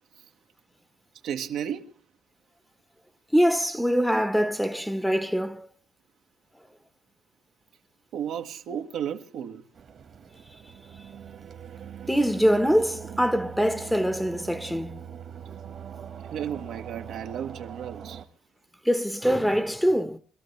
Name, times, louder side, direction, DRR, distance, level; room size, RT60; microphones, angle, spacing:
voice 1, 1.2-1.9 8.1-9.6 16.3-18.2, right 9 dB, 80° right, 1.4 m, -33 dB
voice 2, 3.3-5.7 12.1-15.0 18.8-20.2, equal, ahead, 1.1 m, -24 dB
sound 1, 9.7-18.2, right 8 dB, 60° right, 1.7 m, -42 dB
25.5 x 13.0 x 3.3 m
cardioid pair, 90°, 0 cm